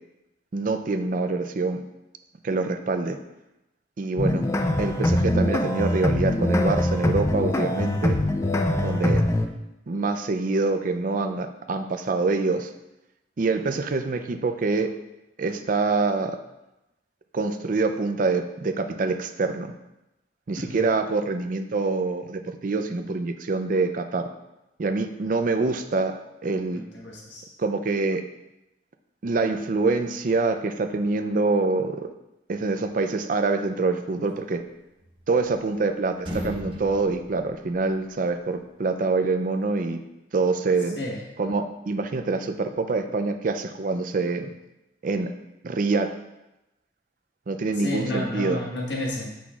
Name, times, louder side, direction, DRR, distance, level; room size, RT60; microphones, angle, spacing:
voice 1, 0.5-1.8 2.4-3.2 4.0-4.5 4.8-8.2 8.8-9.2 9.9-12.7 13.4-15.0 15.4-16.4 17.3-19.7 20.5-24.3 24.8-26.8 27.6-28.2 29.2-32.1 32.5-34.6 35.3-40.0 40.3-41.0 41.4-44.5 45.0-45.3 45.6-46.1 47.5-48.6, right 3 dB, 50° right, 8 dB, 0.4 m, -25 dB
sound 1, 4.2-9.5, left 1 dB, 15° left, 0.4 m, -23 dB
voice 2, 26.7-27.4 40.9-41.2 47.8-49.3, left 1 dB, 75° left, -3 dB, 1.4 m, -31 dB
sound 2, 35.0-35.9 36.1-38.3, equal, 30° right, 1.0 m, -37 dB
7.8 x 6.0 x 2.4 m, 0.93 s
head